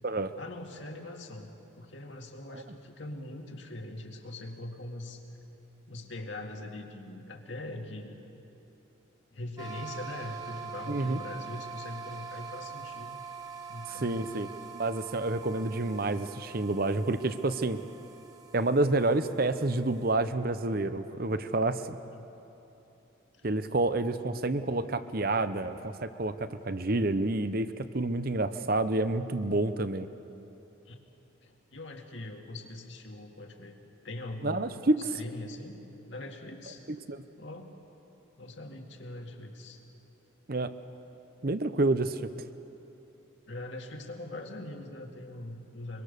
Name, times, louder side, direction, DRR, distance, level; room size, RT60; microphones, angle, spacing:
voice 1, 0.4-5.2 5.9-8.2 9.3-13.2 13.7-14.2 22.1-22.5 23.3-23.5 24.1-24.4 30.9-31.0 31.4-33.8 34.0-36.8 37.4-37.7 38.4-39.8 43.5-46.0, left 1 dB, 65° left, 2 dB, 2.2 m, -42 dB
sound 1, 9.6-20.1, right 6 dB, 20° right, 1.4 m, -44 dB
voice 2, 10.9-11.2 13.9-14.5 14.7-17.8 18.5-22.0 23.4-30.1 34.4-35.0 37.1-37.2 40.5-40.7 41.4-42.3, right 2 dB, 45° right, 11 dB, 0.8 m, -29 dB
24.0 x 23.5 x 6.8 m, 2.9 s
head